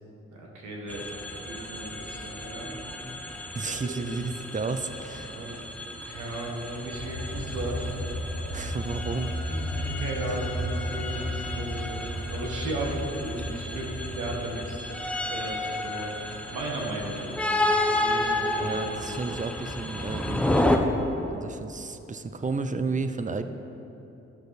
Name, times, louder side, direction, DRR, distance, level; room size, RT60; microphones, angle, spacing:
voice 1, 0.3-1.1 1.5-2.8 3.6-3.9 5.2-5.6 6.1-8.0 9.5-14.9 15.3-16.1 16.5-17.4 17.9-19.4, right 1 dB, 85° right, -1 dB, 1.7 m, -35 dB
sound 1, 0.9-20.8, left 1 dB, 5° left, 1.0 m, -32 dB
voice 2, 3.5-5.3 8.5-9.3 18.6-20.4 21.3-23.4, right 4 dB, 25° right, 9 dB, 0.7 m, -32 dB
sound 2, 6.9-14.4, equal, 45° right, 2.3 m, -34 dB
12.0 x 6.4 x 4.2 m, 2.9 s
supercardioid pair, 45°, 29 cm